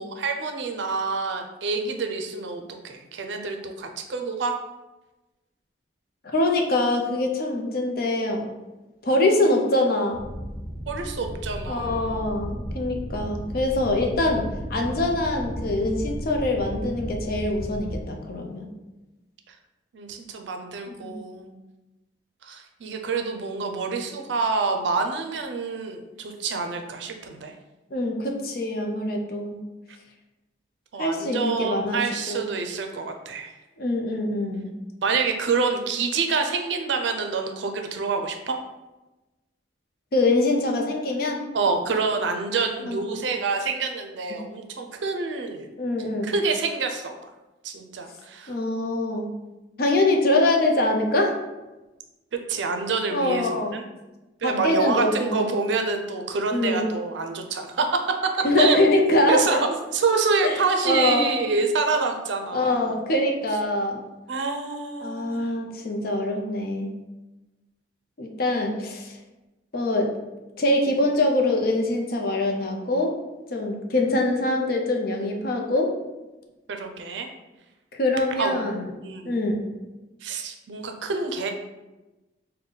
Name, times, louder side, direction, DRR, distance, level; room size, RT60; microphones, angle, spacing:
voice 1, 0.0-4.6 10.9-12.2 19.9-21.6 22.4-27.5 30.9-33.5 35.0-38.6 41.5-45.7 46.2-47.1 47.6-48.5 52.5-53.8 54.4-58.8 59.3-63.0 64.3-65.5 76.7-77.3 78.4-78.6 79.0-79.4 80.2-81.5, right 4 dB, 75° right, 5 dB, 0.5 m, -27 dB
voice 2, 6.2-8.5 9.0-10.2 11.7-18.7 21.0-21.1 27.9-29.6 31.0-32.0 32.3-32.4 33.8-34.7 40.1-41.4 42.8-43.0 45.8-46.3 48.5-49.3 49.8-51.4 53.1-53.8 54.4-55.5 56.5-56.9 58.4-59.6 60.4-60.6 60.8-61.3 62.5-64.0 65.0-66.9 68.2-69.1 69.7-70.1 70.6-73.1 73.5-75.9 77.9-78.9 79.2-79.7, left 2 dB, 50° left, 2 dB, 0.5 m, -24 dB
sound 1, 10.1-18.0, equal, 5° left, 0.6 m, -34 dB
3.8 x 2.2 x 3.8 m, 1.1 s
head